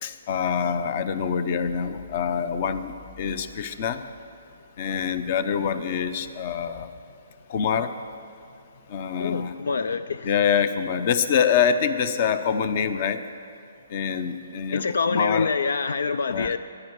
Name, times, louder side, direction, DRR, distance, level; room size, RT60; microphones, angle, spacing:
voice 1, 0.0-4.0 4.8-6.9 7.5-7.9 8.9-9.6 10.2-13.2 13.9-15.5 16.3-16.5, left 7 dB, 40° left, 11 dB, 0.8 m, -25 dB
voice 2, 9.2-10.3 14.7-16.6, left 4 dB, 75° left, 12 dB, 0.4 m, -26 dB
22.0 x 9.8 x 4.7 m, 2.6 s
hypercardioid pair, 155°, 0 cm